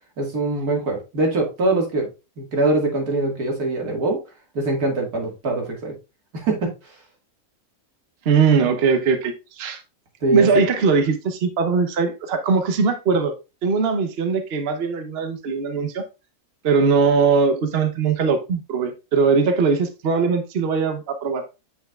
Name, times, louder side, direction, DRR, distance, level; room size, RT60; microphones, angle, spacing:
voice 1, 0.2-2.1 2.4-4.2 4.5-5.9 6.3-6.7 10.2-10.5, right 2 dB, 85° right, 2.5 m, -23 dB
voice 2, 8.2-9.8 10.3-13.3 13.6-16.0 16.6-21.4, right 5 dB, 50° right, 1.0 m, -20 dB
8.1 x 5.6 x 2.4 m
omnidirectional pair, 1.6 m